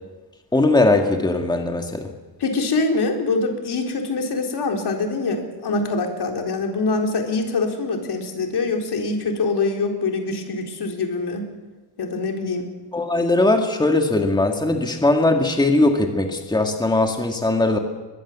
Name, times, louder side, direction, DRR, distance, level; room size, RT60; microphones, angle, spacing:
voice 1, 0.5-2.1 12.9-17.8, left 2 dB, 10° left, 3 dB, 2.0 m, -19 dB
voice 2, 2.4-11.5 12.0-12.7, left 3 dB, 70° left, 2 dB, 4.1 m, -24 dB
22.5 x 22.0 x 7.5 m, 1.3 s
wide cardioid pair, 145°, 41 cm